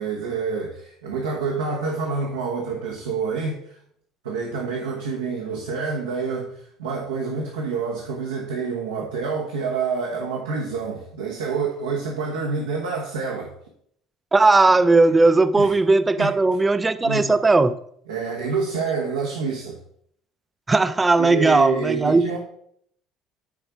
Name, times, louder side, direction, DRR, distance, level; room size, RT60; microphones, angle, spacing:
voice 1, 0.0-3.8 4.2-13.5 15.0-15.1 15.5-15.7 16.2-16.6 17.0-17.2 18.1-19.8 21.2-22.4, right 5 dB, 75° right, 1.3 m, -27 dB
voice 2, 14.3-17.7 20.7-22.3, right 3 dB, 20° right, 0.6 m, -17 dB
10.5 x 4.5 x 4.9 m
figure-of-eight pair, 60°, 0 cm